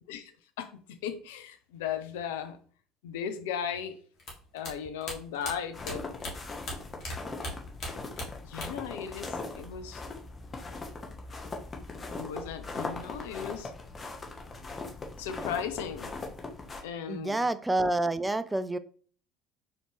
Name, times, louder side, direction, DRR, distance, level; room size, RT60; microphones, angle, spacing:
voice 1, 1.0-2.6 3.0-4.0 4.5-6.0 8.4-10.0 12.2-13.7 15.2-16.1 16.8-17.5, left 8 dB, 75° left, 10 dB, 0.4 m, -36 dB
sound 1, 4.2-7.1 7.4-8.9 9.2-9.9, left 1 dB, 50° left, 1.6 m, -39 dB
sound 2, 5.7-16.8, left 3 dB, 30° left, 1.0 m, -40 dB
voice 2, 17.1-18.8, right 2 dB, 15° right, 13 dB, 0.3 m, -28 dB
4.2 x 2.8 x 3.4 m, 0.44 s
hypercardioid pair, 65°, 0 cm